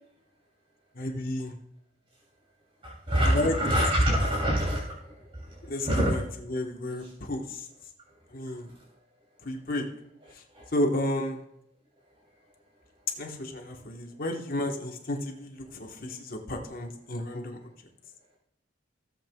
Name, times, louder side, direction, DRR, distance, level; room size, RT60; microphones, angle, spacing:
voice 1, 0.9-1.5 3.2-3.6 5.6-7.7 8.3-8.7 9.4-9.9 10.3-10.4 10.7-11.4 13.2-17.6, left 1 dB, 50° left, 2 dB, 1.4 m, -32 dB
voice 2, 2.8-6.1 10.5-10.7, equal, 30° right, -6 dB, 3.0 m, -26 dB
17.0 x 7.7 x 2.4 m, 0.79 s
head